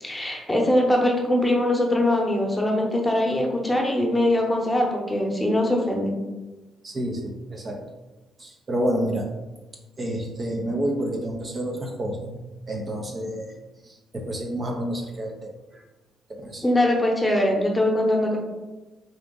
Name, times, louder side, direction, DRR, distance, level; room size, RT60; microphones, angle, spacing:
voice 1, 0.0-6.2 16.6-18.4, left 1 dB, 10° left, 0 dB, 0.9 m, -22 dB
voice 2, 6.8-7.8 8.4-9.3 10.0-12.3 12.7-13.5 13.8-15.8 16.3-16.6, right 1 dB, 35° right, 1 dB, 0.6 m, -29 dB
3.9 x 2.3 x 3.7 m, 1.1 s
cardioid pair, 90°, 0 cm